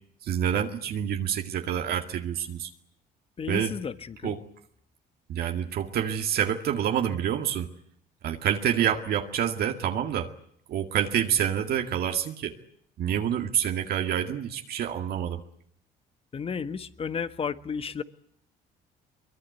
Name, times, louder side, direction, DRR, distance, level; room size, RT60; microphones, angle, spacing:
voice 1, 0.2-2.7 3.5-3.8 4.2-4.4 5.3-7.7 8.2-10.3 10.7-12.5 13.0-15.4, right 9 dB, 65° right, 4 dB, 2.1 m, -27 dB
voice 2, 3.4-4.4 16.3-18.0, left 6 dB, 35° left, 12 dB, 1.5 m, -33 dB
23.0 x 22.0 x 9.4 m, 0.67 s
cardioid pair, 110°, 17 cm